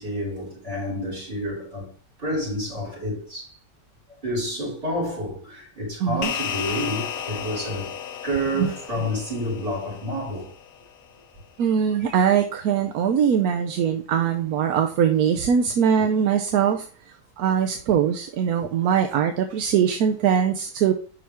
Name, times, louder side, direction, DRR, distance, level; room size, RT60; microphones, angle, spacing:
voice 1, 0.0-1.9 2.2-3.6 4.2-7.9 8.2-10.5, equal, 35° right, 4.7 m, -29 dB
voice 2, 6.0-6.3 11.6-16.8 17.4-20.9, right 8 dB, 75° right, 1.1 m, -21 dB
sound 1, 6.2-10.9, left 9 dB, 75° left, 1.1 m, -33 dB
7.4 x 5.8 x 3.5 m
omnidirectional pair, 1.7 m